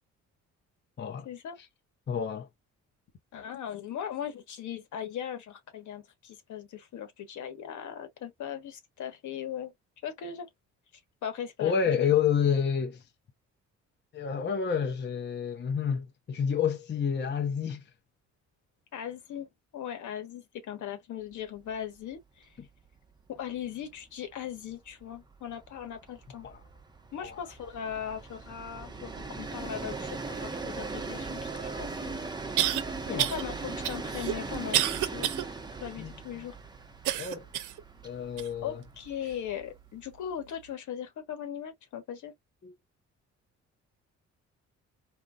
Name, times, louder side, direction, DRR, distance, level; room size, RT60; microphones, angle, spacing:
voice 1, 1.2-1.6 3.3-9.7 10.0-10.5 11.2-11.9 18.9-22.5 23.3-26.5 27.1-32.8 33.1-35.3 35.8-36.6 38.6-42.3, left 9 dB, 75° left, 1.3 m, -39 dB
voice 2, 2.1-2.5 11.6-13.0 14.1-17.8 26.4-26.6 27.2-27.4 33.1-33.3 36.0-36.1 37.2-37.5 38.0-38.8 42.6-42.7, left 7 dB, 35° left, 0.7 m, -29 dB
Train, 21.7-21.8 22.1-22.2 22.5-39.9, right 3 dB, 15° right, 0.8 m, -40 dB
sound 1, 31.6-31.7 32.6-32.8 33.2-33.4 33.8-35.4 35.9-36.0 37.0-37.8 38.4-38.5 39.2-39.3, right 12 dB, 80° right, 0.5 m, -28 dB
3.9 x 2.2 x 2.3 m
cardioid pair, 90°, 30 cm